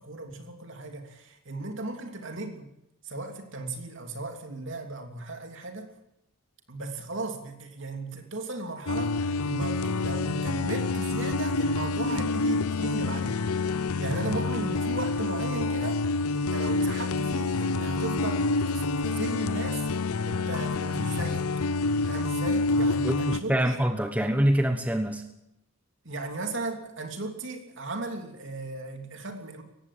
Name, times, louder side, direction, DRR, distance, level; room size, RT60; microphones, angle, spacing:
voice 1, 0.0-2.7 3.0-5.9 6.7-13.4 13.8-16.0 16.3-19.9 20.2-21.5 22.0-23.8 26.0-29.6, right 2 dB, 55° right, 5 dB, 3.0 m, -36 dB
sound 1, 8.9-23.4, left 3 dB, 90° left, 0.8 m, -27 dB
voice 2, 23.0-25.2, right 1 dB, 5° right, 6 dB, 1.2 m, -25 dB
19.0 x 16.0 x 8.7 m, 0.81 s
head